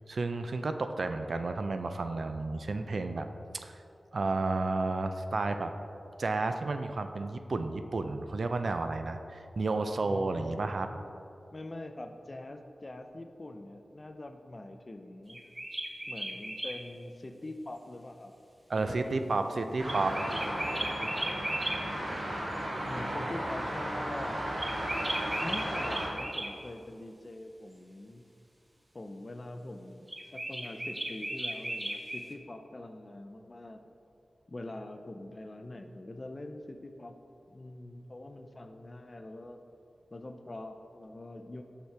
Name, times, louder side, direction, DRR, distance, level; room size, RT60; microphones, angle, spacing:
voice 1, 0.1-3.3 3.5-3.8 4.1-5.7 6.2-11.1 18.7-20.1, right 3 dB, 65° right, 8 dB, 0.3 m, -32 dB
voice 2, 10.1-10.6 11.5-15.4 16.1-18.4 18.7-19.5 20.3-21.4 22.8-24.4 25.4-28.2 28.9-33.8 34.5-37.2 37.5-39.6 40.1-41.6, left 1 dB, 40° left, 6 dB, 0.4 m, -44 dB
sound 1, 15.3-16.8 19.8-21.8 24.6-26.5 30.1-32.3, right 1 dB, 20° right, 0.7 m, -36 dB
sound 2, 19.8-26.1, right 1 dB, 85° right, 1.3 m, -35 dB
6.0 x 5.5 x 3.3 m, 2.6 s
wide cardioid pair, 70°, 0 cm